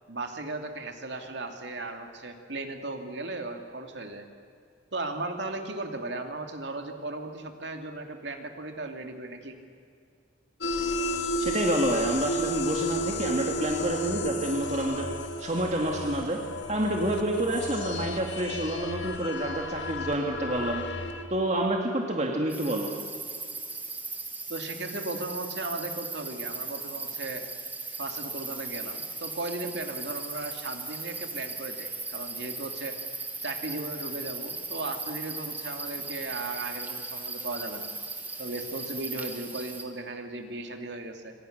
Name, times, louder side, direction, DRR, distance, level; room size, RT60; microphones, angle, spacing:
voice 1, 0.1-4.3 4.9-9.6 24.5-27.4 28.0-33.0 33.4-37.9 38.4-41.3, right 2 dB, 65° right, 5 dB, 2.6 m, -36 dB
sound 1, 10.6-21.2, left 1 dB, 65° left, 1.9 m, -32 dB
voice 2, 11.4-15.1 15.4-16.4 16.7-20.8 21.3-22.9, right 1 dB, 35° right, 0 dB, 2.1 m, -28 dB
sound 2, 22.5-39.8, right 3 dB, 10° right, 2.1 m, -37 dB
27.0 x 24.5 x 6.7 m, 2.3 s
head